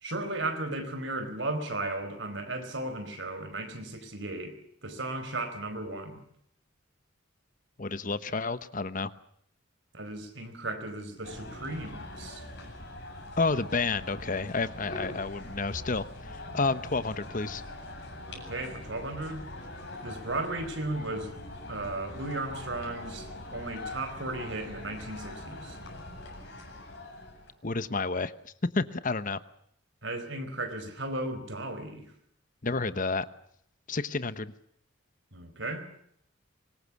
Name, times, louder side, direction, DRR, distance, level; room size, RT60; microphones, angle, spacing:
voice 1, 0.0-4.5 4.8-6.2 9.9-12.4 18.3-19.4 20.0-21.3 21.7-25.8 30.0-32.0 35.3-35.9, right 2 dB, 65° right, 8 dB, 4.4 m, -35 dB
voice 2, 7.8-9.1 13.4-17.6 27.6-29.4 32.6-33.3 33.9-34.5, left 3 dB, 40° left, 14 dB, 1.0 m, -30 dB
sound 1, 11.2-27.5, left 1 dB, 55° left, 7.7 m, -43 dB
25.0 x 21.0 x 7.2 m, 0.71 s
head